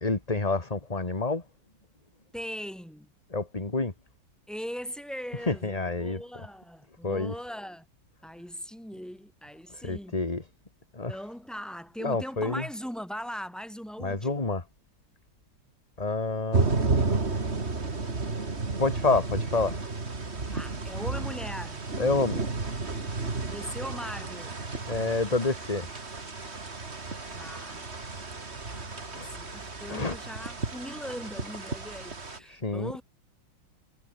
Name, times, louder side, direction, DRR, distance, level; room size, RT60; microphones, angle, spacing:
voice 1, 0.0-1.4 3.3-3.9 5.5-6.2 7.0-7.3 9.7-10.4 10.9-11.2 12.0-12.6 14.0-14.6 16.0-16.7 18.8-19.9 22.0-22.4 24.9-25.9 28.9-29.3 29.9-30.2 32.4-32.9, left 3 dB, 20° left, 2.2 m, -28 dB
voice 2, 2.3-3.1 4.5-7.9 8.2-10.2 11.1-14.5 20.5-21.8 23.4-24.6 27.3-27.9 28.7-33.0, equal, ahead, 5.3 m, -40 dB
sound 1, 16.5-32.4, right 3 dB, 30° right, 2.8 m, -32 dB
omnidirectional pair, 2.1 m